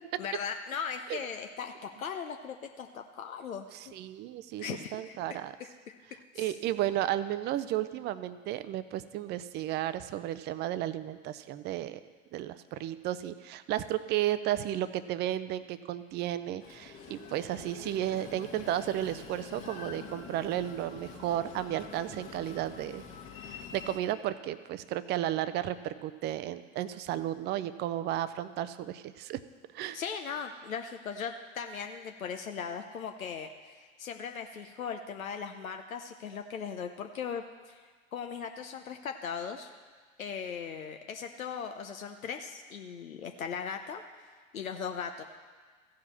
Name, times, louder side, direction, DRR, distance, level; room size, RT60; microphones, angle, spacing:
voice 1, 0.2-3.7 4.6-6.0 6.3-6.6 29.9-39.7 40.2-44.0 44.5-45.2, left 6 dB, 85° left, 5 dB, 0.7 m, -38 dB
voice 2, 3.9-4.6 4.9-5.5 6.4-12.0 12.3-23.0 23.5-29.4 29.7-30.0, right 13 dB, 25° right, 13 dB, 0.4 m, -33 dB
Train, 16.6-24.0, left 6 dB, 35° left, 1.5 m, -46 dB
14.5 x 4.9 x 7.2 m, 1.5 s
hypercardioid pair, 90°, 40 cm